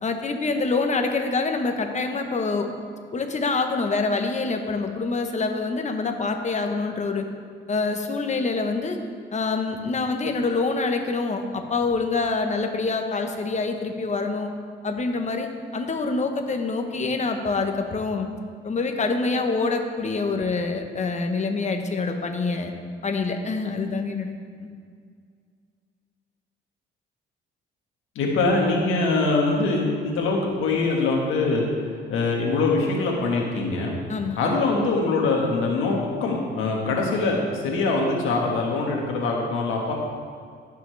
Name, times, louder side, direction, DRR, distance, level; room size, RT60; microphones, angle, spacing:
voice 1, 0.0-2.7 3.1-7.2 7.7-9.0 9.3-14.5 14.8-18.3 18.6-22.7 23.0-24.3 24.6-24.7 34.1-34.4, left 3 dB, 35° left, 5 dB, 1.1 m, -26 dB
voice 2, 28.1-31.6 32.1-33.9 34.4-39.9, left 3 dB, 90° left, -1 dB, 1.7 m, -23 dB
15.5 x 5.7 x 3.4 m, 2.1 s
cardioid pair, 90°, 20 cm